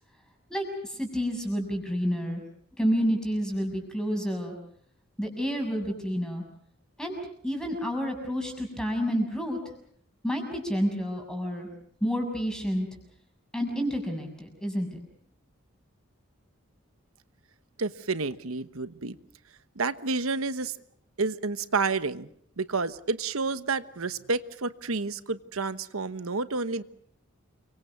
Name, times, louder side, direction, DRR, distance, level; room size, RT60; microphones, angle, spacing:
voice 1, 0.5-2.4 2.8-4.5 5.2-6.4 7.0-7.2 7.4-9.6 10.2-11.7 12.0-12.9 13.5-15.0, equal, 5° left, 3 dB, 6.5 m, -29 dB
voice 2, 17.8-19.2 19.8-20.8 21.2-22.3 22.6-26.8, right 4 dB, 80° right, 13 dB, 1.2 m, -30 dB
29.0 x 24.5 x 5.9 m, 0.66 s
head